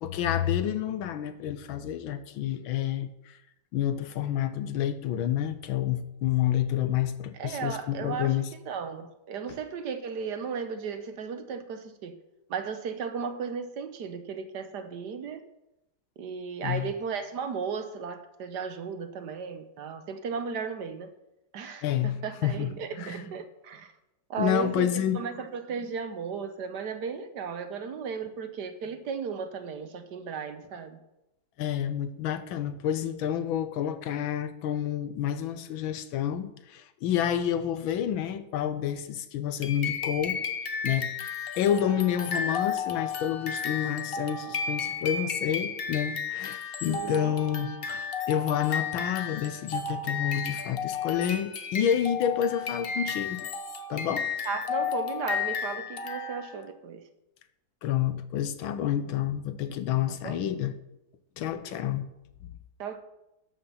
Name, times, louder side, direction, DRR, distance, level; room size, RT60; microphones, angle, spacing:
voice 1, 0.0-3.4 3.7-8.5 16.6-16.9 21.8-23.2 24.4-25.2 31.6-40.4 40.8-41.1 41.6-53.5 53.9-54.3 57.8-60.7 61.4-62.1, left 10 dB, 90° left, 11 dB, 1.6 m, -29 dB
voice 2, 7.3-8.4 8.6-12.1 12.5-15.4 16.2-21.1 21.5-23.9 24.3-31.0 46.9-47.3 54.4-57.0 60.2-60.4 62.8-63.0, right 6 dB, 65° right, 8 dB, 1.4 m, -35 dB
sound 1, 39.6-56.7, left 6 dB, 50° left, 0.6 m, -33 dB
13.0 x 5.7 x 5.6 m, 0.89 s
omnidirectional pair, 2.1 m